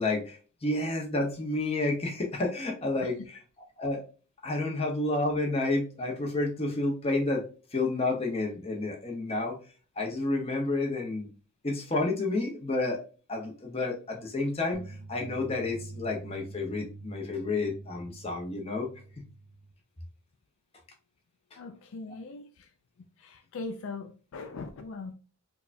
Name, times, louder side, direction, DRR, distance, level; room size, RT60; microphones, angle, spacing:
voice 1, 0.0-3.4 3.8-4.0 4.4-7.4 7.7-9.6 10.0-11.3 11.6-13.0 13.3-18.9, left 2 dB, 25° left, 0.7 m, -30 dB
sound 1, 14.7-19.7, right 3 dB, 15° right, 0.4 m, -46 dB
voice 2, 21.6-22.7 23.2-25.1, left 3 dB, 65° left, 0.3 m, -40 dB
4.7 x 2.2 x 2.5 m
head